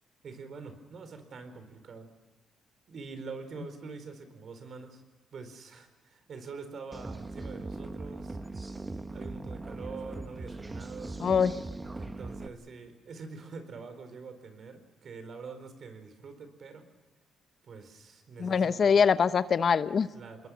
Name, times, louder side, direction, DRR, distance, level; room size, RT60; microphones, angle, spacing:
voice 1, 0.2-2.1 2.9-5.0 5.3-8.4 9.1-11.2 12.0-16.9 17.6-19.0 20.1-20.5, right 4 dB, 55° right, 8 dB, 4.2 m, -45 dB
sound 1, 6.9-12.5, right 2 dB, 20° right, 1.4 m, -40 dB
voice 2, 11.2-11.5 18.4-20.1, left 6 dB, 50° left, 13 dB, 0.9 m, -23 dB
28.0 x 21.0 x 6.3 m, 1.2 s
cardioid pair, 90°, 0 cm